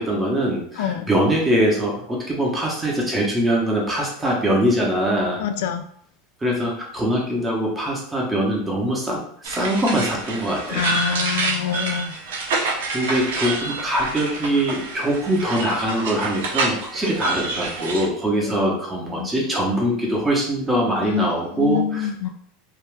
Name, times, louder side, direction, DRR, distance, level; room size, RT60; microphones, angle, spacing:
voice 1, 0.0-5.4 6.4-10.8 12.9-22.3, right 1 dB, 10° right, -2 dB, 0.8 m, -23 dB
voice 2, 0.8-1.1 5.4-5.8 10.7-12.2 18.4-18.8 19.1-19.5 21.0-22.3, left 8 dB, 70° left, 8 dB, 0.3 m, -26 dB
sound 1, 9.4-18.1, right 3 dB, 85° right, 0.6 m, -27 dB
2.7 x 2.3 x 3.2 m, 0.65 s
supercardioid pair, 140°, 0 cm